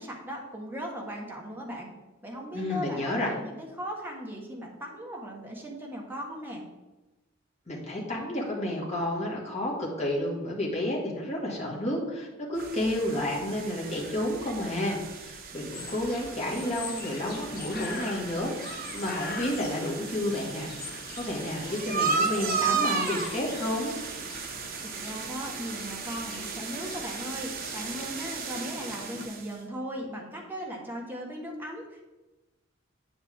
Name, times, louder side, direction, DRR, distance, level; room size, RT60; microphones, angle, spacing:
voice 1, 0.0-1.9 2.2-6.6 24.8-32.1, equal, 10° right, -1 dB, 1.5 m, -38 dB
voice 2, 2.5-3.3 7.7-23.9, left 1 dB, 35° left, -4 dB, 2.3 m, -31 dB
sound 1, 12.6-29.6, right 5 dB, 50° right, 1.0 m, -35 dB
sound 2, 15.7-29.3, left 3 dB, 50° left, 1.3 m, -42 dB
8.8 x 7.5 x 3.7 m, 1.1 s
head